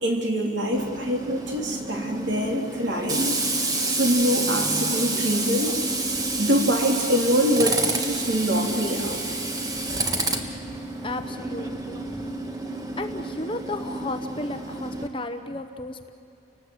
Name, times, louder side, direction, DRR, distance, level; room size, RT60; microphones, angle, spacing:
voice 1, 0.0-3.4 3.9-5.7 6.4-9.2, equal, 65° right, 0 dB, 3.6 m, -24 dB
Tools, 0.7-15.1, right 2 dB, 20° right, 1.4 m, -29 dB
voice 2, 11.0-12.0 13.0-16.1, left 2 dB, 25° left, 6 dB, 1.0 m, -33 dB
30.0 x 19.0 x 8.1 m, 2.6 s
head